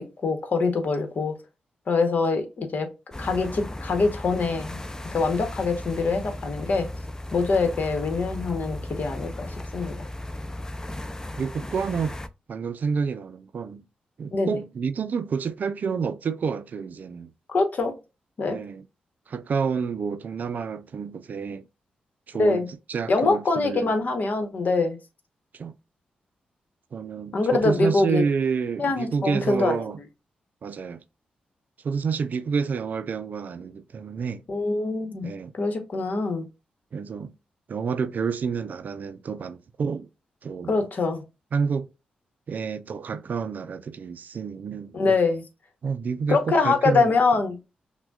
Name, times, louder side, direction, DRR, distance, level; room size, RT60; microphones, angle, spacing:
voice 1, 0.0-1.4 1.9-2.9 3.2-4.8 5.1-6.9 7.3-10.1 14.3-14.5 17.5-17.9 18.4-18.6 22.3-22.7 23.1-25.0 27.3-28.2 28.8-29.9 34.5-36.5 40.7-41.2 44.9-45.4 46.3-47.6, left 3 dB, 60° left, 1.0 m, -24 dB
sound 1, 3.1-12.3, left 1 dB, 20° left, 0.5 m, -36 dB
voice 2, 11.4-12.2 12.5-13.8 14.2-17.3 18.5-18.8 19.3-21.7 22.3-23.9 25.5-25.7 26.9-30.0 30.6-31.0 31.8-34.4 35.2-35.5 36.9-37.3 37.7-40.1 40.4-40.9 41.5-41.9 42.5-45.0 45.8-47.2, right 6 dB, 60° right, 0.4 m, -29 dB
5.9 x 2.2 x 2.3 m
supercardioid pair, 50°, 3 cm